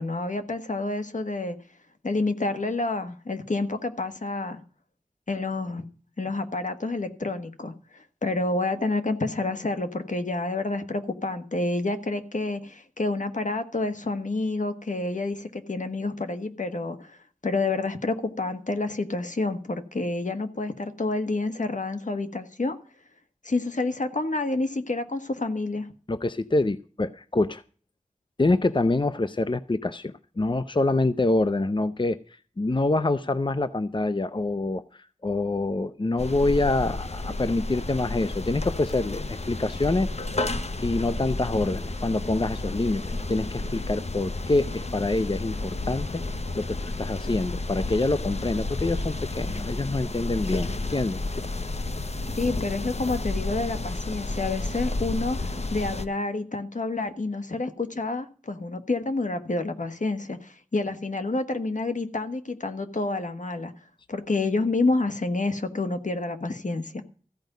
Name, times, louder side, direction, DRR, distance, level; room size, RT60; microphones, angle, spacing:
voice 1, 0.0-1.6 2.0-4.6 5.3-5.9 6.2-17.2 17.4-22.8 23.4-25.9 52.4-63.7 64.1-67.0, left 2 dB, 75° left, 1.4 m, -28 dB
voice 2, 26.1-27.6 28.4-32.2 32.6-40.1 40.8-43.0 43.3-46.2 46.5-51.2, left 2 dB, 40° left, 0.6 m, -26 dB
sound 1, 36.2-56.1, left 2 dB, 55° left, 0.9 m, -31 dB
14.5 x 5.2 x 9.2 m
wide cardioid pair, 50°, 13 cm